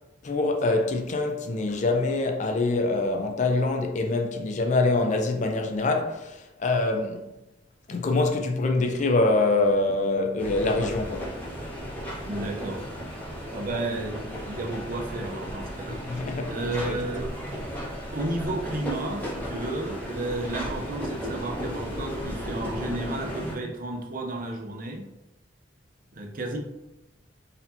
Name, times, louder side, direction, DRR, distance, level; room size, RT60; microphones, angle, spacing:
voice 1, 0.2-7.3 7.9-11.3 15.9-17.0, left 2 dB, 40° left, 0.4 m, -25 dB
sound 1, 10.4-23.5, equal, 10° left, 1.0 m, -35 dB
voice 2, 12.3-12.9 13.5-16.0 16.5-17.3 18.1-25.1 26.1-26.6, right 2 dB, 50° right, 0.6 m, -32 dB
4.1 x 2.8 x 2.7 m
head